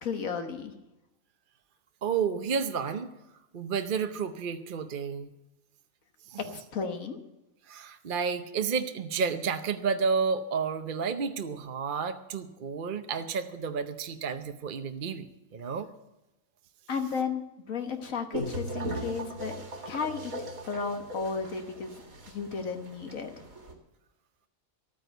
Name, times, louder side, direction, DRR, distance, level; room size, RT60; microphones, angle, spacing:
voice 1, 0.0-0.7 6.4-7.2 16.9-17.4 17.7-19.6 19.9-20.3 20.7-23.4, left 5 dB, 75° left, 6 dB, 1.6 m, -33 dB
voice 2, 2.0-3.1 3.5-5.3 6.3-6.6 7.7-15.9, right 6 dB, 45° right, 8 dB, 0.8 m, -31 dB
sound 1, 18.3-23.7, right 1 dB, 85° right, 2.6 m, -39 dB
13.0 x 9.5 x 8.0 m, 0.93 s
omnidirectional pair, 1.4 m